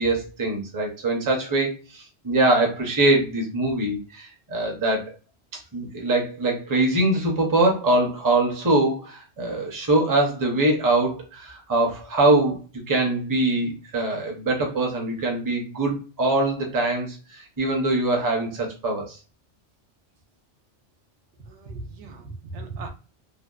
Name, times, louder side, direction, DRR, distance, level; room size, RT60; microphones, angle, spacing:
voice 1, 0.0-5.1 5.7-12.6 12.9-19.2, right 2 dB, 25° right, 0 dB, 0.5 m, -23 dB
voice 2, 21.5-22.9, right 3 dB, 80° right, 4 dB, 0.9 m, -37 dB
2.6 x 2.1 x 2.3 m, 0.34 s
omnidirectional pair, 1.2 m